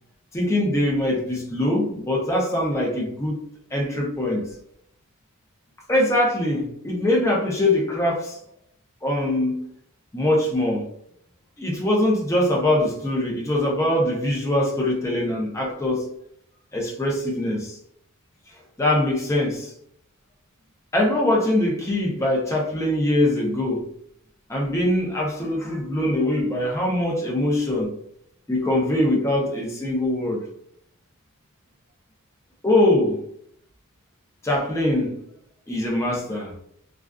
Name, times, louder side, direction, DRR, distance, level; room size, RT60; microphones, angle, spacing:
voice 1, 0.3-3.4 3.7-4.4 5.9-8.4 9.0-9.7 10.1-10.8 11.6-16.0 16.7-17.8 18.8-19.7 20.9-23.8 24.5-27.9 28.5-30.4 32.6-33.2 34.4-35.1 35.7-36.5, left 1 dB, 15° left, -3 dB, 0.5 m, -22 dB
2.4 x 2.3 x 2.2 m, 0.72 s
head